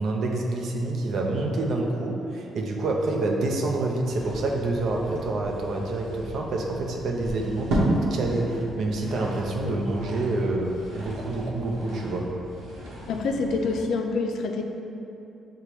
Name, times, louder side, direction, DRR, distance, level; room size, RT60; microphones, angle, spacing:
voice 1, 0.0-12.3, right 2 dB, 65° right, 0 dB, 0.5 m, -27 dB
sound 1, 4.0-13.8, right 1 dB, 90° right, 0.9 m, -33 dB
voice 2, 13.1-14.6, left 4 dB, 75° left, 3 dB, 0.4 m, -26 dB
6.7 x 2.2 x 3.0 m, 2.9 s
cardioid pair, 90°, 0 cm